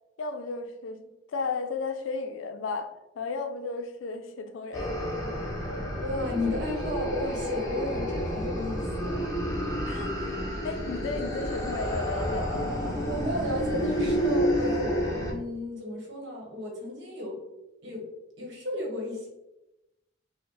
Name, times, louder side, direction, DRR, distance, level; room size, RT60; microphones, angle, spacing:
voice 1, 0.2-2.9 3.2-5.0 9.8-10.3 10.6-12.7, left 4 dB, 80° left, 8 dB, 0.4 m, -34 dB
sound 1, 4.7-15.3, equal, 15° left, 0.6 m, -30 dB
voice 2, 6.0-9.3 13.0-17.4 17.8-18.0 18.4-19.3, left 1 dB, 60° right, -2 dB, 1.1 m, -33 dB
4.9 x 2.1 x 3.1 m, 0.97 s
head